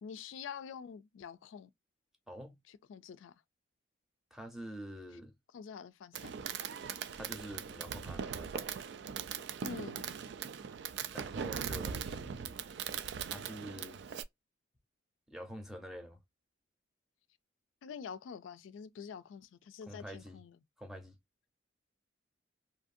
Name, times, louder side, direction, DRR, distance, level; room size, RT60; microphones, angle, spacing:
voice 1, 0.0-1.7 2.7-3.3 5.5-6.4 9.6-10.1 17.8-20.6, left 6 dB, 85° left, 0.3 m, -46 dB
voice 2, 2.3-2.6 4.3-5.3 7.1-8.7 11.1-12.5 13.2-14.0 15.3-16.2 19.9-20.4 20.8-21.2, equal, ahead, 0.6 m, -47 dB
Fireworks, 6.1-14.2, right 7 dB, 60° right, 0.3 m, -40 dB
2.7 x 2.6 x 2.4 m
head